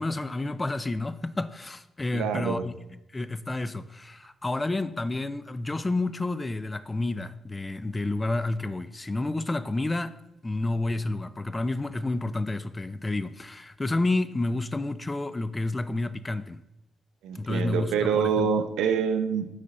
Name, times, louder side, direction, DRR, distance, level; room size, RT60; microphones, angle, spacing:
voice 1, 0.0-2.7 3.1-10.1 10.4-16.6 17.3-18.5, left 2 dB, 20° left, 0.3 m, -30 dB
voice 2, 2.1-2.7 17.2-19.5, right 6 dB, 85° right, 0.6 m, -26 dB
9.2 x 3.3 x 3.9 m
cardioid pair, 90°, 0 cm